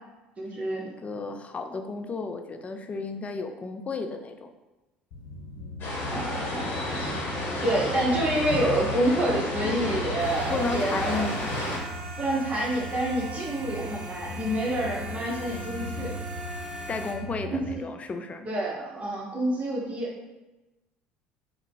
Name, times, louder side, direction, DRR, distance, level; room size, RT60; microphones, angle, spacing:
voice 1, 0.4-0.8 6.1-6.8 7.6-11.3 12.2-16.1 17.5-17.8 18.4-20.3, right 1 dB, 25° right, -4 dB, 1.1 m, -28 dB
voice 2, 1.0-4.5 10.5-11.5 16.9-18.5, left 3 dB, 25° left, 6 dB, 0.4 m, -33 dB
sound 1, 5.1-17.8, left 1 dB, 65° left, 0.7 m, -38 dB
sound 2, 5.8-11.8, left 1 dB, 45° left, 1.0 m, -32 dB
sound 3, 10.2-17.1, right 2 dB, 70° right, 0.7 m, -41 dB
3.1 x 2.2 x 4.0 m, 1.1 s
hypercardioid pair, 65°, 5 cm